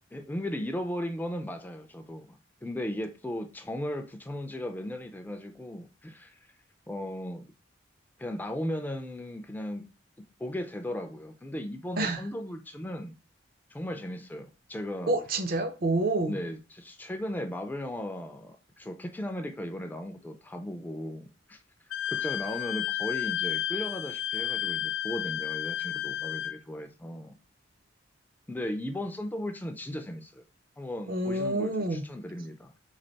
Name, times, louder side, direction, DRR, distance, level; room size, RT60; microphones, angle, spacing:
voice 1, 0.1-6.4 6.9-7.5 8.2-9.8 10.4-13.1 13.7-15.1 16.3-21.6 22.1-27.3 28.5-30.4 30.8-32.7, left 1 dB, 10° left, 0.3 m, -36 dB
voice 2, 15.1-16.4 31.1-32.0, right 2 dB, 50° right, 0.5 m, -28 dB
Wind instrument woodwind instrument, 21.9-26.6, left 11 dB, 80° left, 0.4 m, -32 dB
3.4 x 3.3 x 3.9 m
head